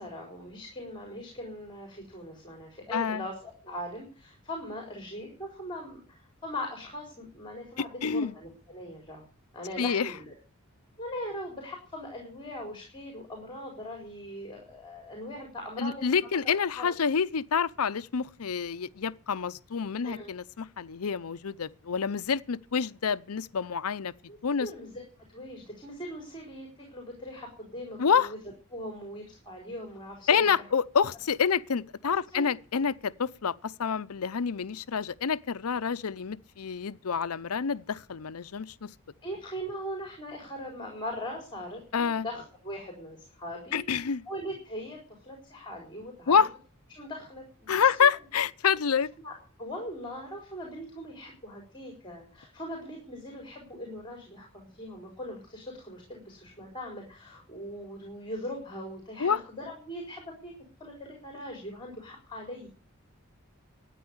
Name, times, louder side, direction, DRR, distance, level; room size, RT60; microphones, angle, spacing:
voice 1, 0.0-9.2 9.5-10.3 11.0-16.9 20.0-20.3 24.3-25.0 25.3-28.4 28.7-30.5 32.0-32.5 39.2-43.8 44.3-46.4 46.9-48.1 49.2-49.3 49.6-60.5 60.8-62.7, equal, 20° left, 4.3 m, -40 dB
voice 2, 2.9-3.2 7.8-8.3 9.8-10.1 15.8-24.1 24.4-24.7 28.0-28.3 30.3-38.9 41.9-42.3 43.7-44.2 46.3-46.5 47.7-49.1 59.2-59.4, left 6 dB, 80° left, 0.6 m, -28 dB
13.5 x 9.3 x 7.9 m
head